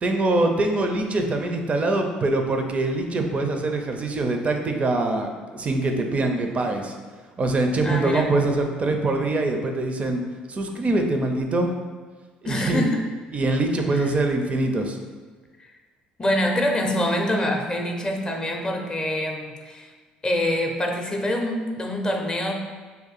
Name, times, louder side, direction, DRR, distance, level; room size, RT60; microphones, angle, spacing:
voice 1, 0.0-7.0 7.4-10.2 10.5-11.7 12.4-12.9 13.3-15.0, right 2 dB, 35° right, 4 dB, 0.5 m, -23 dB
voice 2, 7.8-8.3 12.4-13.0 13.9-14.2 15.6-15.7 16.2-19.9 20.2-22.5, left 1 dB, 25° left, 2 dB, 0.5 m, -25 dB
2.6 x 2.3 x 4.1 m, 1.4 s
hypercardioid pair, 65°, 4 cm